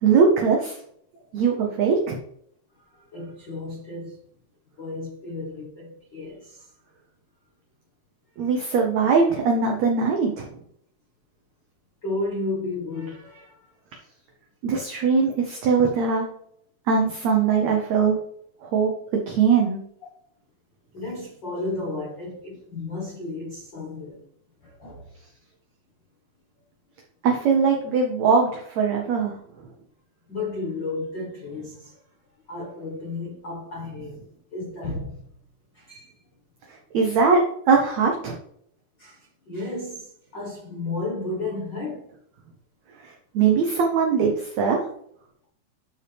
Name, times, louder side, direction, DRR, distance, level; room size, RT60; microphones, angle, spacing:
voice 1, 0.0-0.8 1.3-2.2 8.4-10.5 14.6-16.3 16.9-18.2 18.6-19.8 27.2-29.3 36.7-38.4 43.0-44.9, right 5 dB, 70° right, 1.7 m, -21 dB
voice 2, 2.8-4.2 4.8-6.7 8.4-8.5 12.0-13.7 20.9-24.2 24.6-25.1 30.3-32.0 32.5-34.2 34.5-35.2 35.7-36.1 39.0-42.0, left 2 dB, 65° left, 1.1 m, -33 dB
11.5 x 4.6 x 3.4 m
omnidirectional pair, 4.2 m